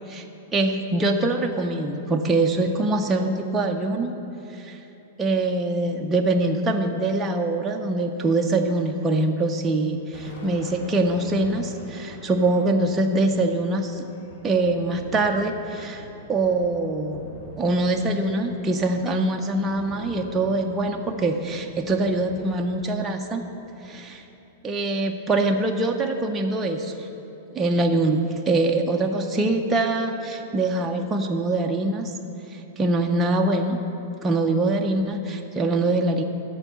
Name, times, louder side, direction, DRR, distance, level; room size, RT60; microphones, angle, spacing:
voice 1, 0.5-4.1 4.5-4.8 5.2-14.0 14.4-17.3 17.6-23.4 23.8-24.2 24.6-27.1 27.5-32.1 32.5-33.8 34.2-36.2, right 2 dB, 10° right, 1 dB, 0.4 m, -24 dB
Thunder, 9.8-24.4, left 1 dB, 40° left, 1.8 m, -44 dB
13.5 x 4.5 x 8.0 m, 3.0 s
supercardioid pair, 180°, 0 cm